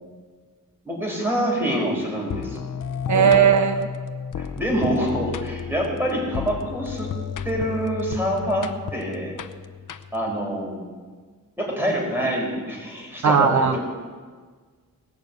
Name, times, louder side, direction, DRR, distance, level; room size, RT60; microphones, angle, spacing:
voice 1, 0.8-2.6 3.0-3.7 4.4-7.1 7.4-9.3 10.1-10.8 11.6-13.8, equal, 5° right, -2 dB, 4.7 m, -26 dB
sound 1, 2.3-10.4, left 7 dB, 70° left, 0.7 m, -32 dB
voice 2, 3.1-3.8 13.2-13.8, right 7 dB, 60° right, 8 dB, 0.7 m, -17 dB
19.0 x 6.7 x 8.1 m, 1.5 s
wide cardioid pair, 125°, 33 cm